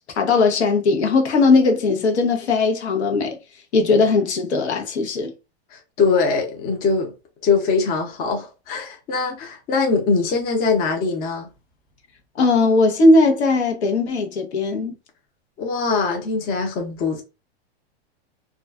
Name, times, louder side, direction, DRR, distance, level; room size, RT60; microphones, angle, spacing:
voice 1, 0.0-3.4 3.7-5.3 12.4-15.0, left 3 dB, 85° left, 0.9 m, -18 dB
voice 2, 5.7-7.1 7.4-11.5 15.6-17.2, left 4 dB, 30° left, 0.6 m, -22 dB
2.4 x 2.2 x 2.3 m
hypercardioid pair, 135°, 32 cm